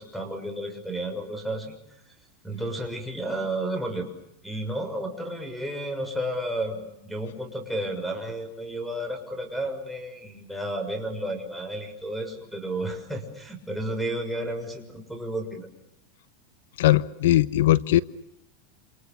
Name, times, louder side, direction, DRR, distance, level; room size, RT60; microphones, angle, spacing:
voice 1, 0.0-1.7 2.4-4.1 4.4-15.7, right 1 dB, ahead, 1 dB, 6.6 m, -32 dB
voice 2, 16.8-18.0, left 14 dB, 80° left, 17 dB, 1.1 m, -19 dB
29.0 x 28.5 x 7.0 m, 0.83 s
supercardioid pair, 140°, 0 cm